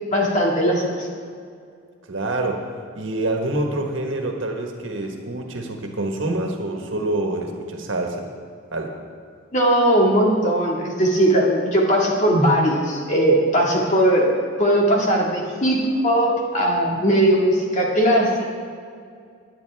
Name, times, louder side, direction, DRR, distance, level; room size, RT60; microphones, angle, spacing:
voice 1, 0.1-1.1 9.5-14.3 14.6-18.5, right 1 dB, 35° left, -2 dB, 1.9 m, -19 dB
voice 2, 2.1-2.7 2.9-8.3 8.7-8.9, right 2 dB, 75° right, 2 dB, 1.4 m, -26 dB
17.0 x 9.8 x 3.5 m, 2.2 s
head